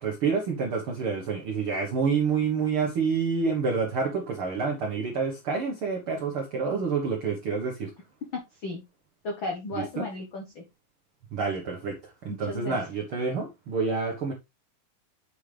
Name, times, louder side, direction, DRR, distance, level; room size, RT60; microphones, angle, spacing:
voice 1, 0.0-7.9 9.8-10.0 11.3-14.3, right 5 dB, 50° right, 1.7 m, -28 dB
voice 2, 8.3-8.8 9.2-10.6 12.3-12.8, left 2 dB, 65° left, 1.2 m, -34 dB
8.0 x 6.6 x 3.4 m
omnidirectional pair, 4.2 m